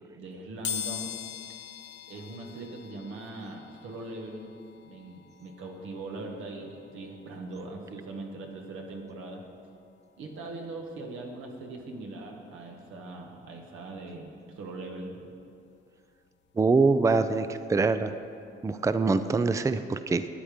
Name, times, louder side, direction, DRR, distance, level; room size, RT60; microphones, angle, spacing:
voice 1, 0.1-1.1 2.1-4.5 4.8-9.4 10.2-15.3, right 2 dB, 85° right, 1 dB, 1.7 m, -41 dB
sound 1, 0.6-11.3 11.8-11.9 13.0-13.1 13.4-15.5 15.9-18.5 18.8-19.0 19.3-19.4, left 9 dB, 65° left, 0.9 m, -43 dB
voice 2, 16.6-18.1 18.6-20.2, right 4 dB, 15° right, 11 dB, 0.4 m, -24 dB
13.0 x 9.1 x 5.1 m, 2.5 s
cardioid pair, 90°, 20 cm